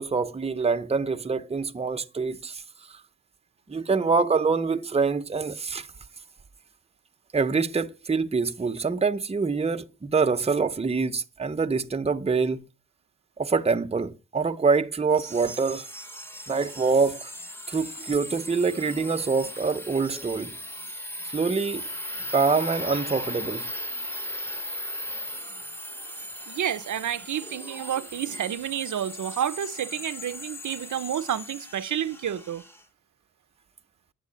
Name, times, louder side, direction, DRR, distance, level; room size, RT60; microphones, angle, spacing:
voice 1, 0.0-2.6 2.9-3.0 3.7-5.9 7.3-12.7 13.4-15.9 16.5-17.3 17.7-20.6 21.2-21.9 22.3-23.7, right 4 dB, 20° right, 0.7 m, -25 dB
sound 1, 15.2-32.8, equal, 10° left, 1.0 m, -38 dB
voice 2, 26.5-32.6, right 10 dB, 80° right, 0.7 m, -30 dB
10.5 x 9.0 x 8.4 m
wide cardioid pair, 150°, 29 cm